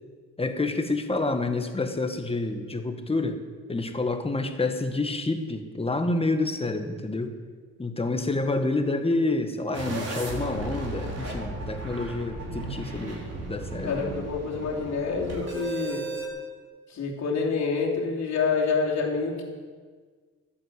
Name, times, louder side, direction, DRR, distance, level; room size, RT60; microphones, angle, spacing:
voice 1, 0.4-3.4 3.7-7.3 7.8-14.0, left 2 dB, 20° left, 7 dB, 1.5 m, -28 dB
sound 1, 9.7-16.3, right 2 dB, 55° right, 4.1 m, -35 dB
voice 2, 13.8-16.1 16.9-19.4, left 5 dB, 65° left, -1 dB, 3.1 m, -27 dB
12.5 x 8.9 x 8.1 m, 1.5 s
cardioid pair, 90°, 30 cm